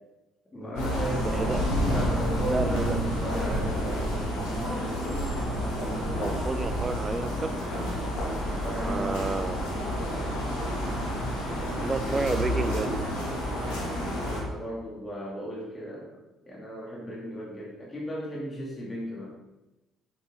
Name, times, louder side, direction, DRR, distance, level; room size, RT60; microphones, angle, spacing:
voice 1, 0.5-4.1 8.5-9.6 14.4-16.2 16.5-19.3, equal, 25° left, -5 dB, 3.0 m, -35 dB
sound 1, 0.6-6.1, right 1 dB, 50° left, 2.5 m, -41 dB
sound 2, 0.8-14.4, equal, 75° left, 2.8 m, -29 dB
voice 2, 2.4-3.0 6.1-7.5 8.8-9.6 11.8-12.9, right 3 dB, 30° right, 11 dB, 0.8 m, -30 dB
8.7 x 8.1 x 3.9 m, 1.0 s
hypercardioid pair, 50°, 0 cm